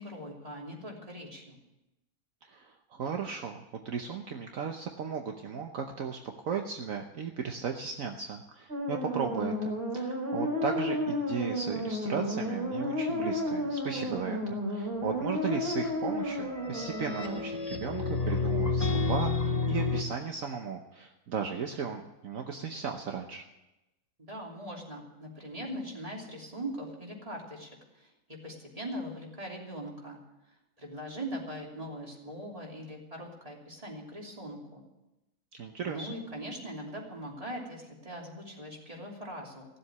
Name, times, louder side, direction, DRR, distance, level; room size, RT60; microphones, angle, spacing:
voice 1, 0.0-1.6 24.2-30.2 30.8-34.8 35.8-39.7, equal, 25° right, -2 dB, 3.2 m, -41 dB
voice 2, 2.4-6.2 6.4-23.4 35.6-36.1, right 6 dB, 65° right, 3 dB, 1.3 m, -36 dB
sound 1, 8.7-17.6, left 1 dB, 40° right, 2.6 m, -32 dB
sound 2, 16.0-20.0, left 3 dB, 30° left, 1.0 m, -30 dB
16.0 x 7.7 x 9.8 m, 0.97 s
omnidirectional pair, 1.6 m